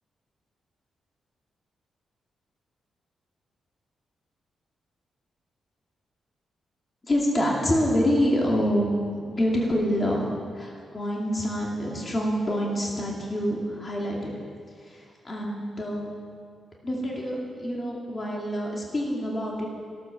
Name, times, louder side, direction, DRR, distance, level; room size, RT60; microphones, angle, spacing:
voice 1, 7.0-10.3 10.5-14.3 14.8-16.1 16.8-19.7, equal, 25° left, -3 dB, 2.4 m, -26 dB
15.5 x 12.5 x 7.1 m, 2.2 s
wide cardioid pair, 155°, 0 cm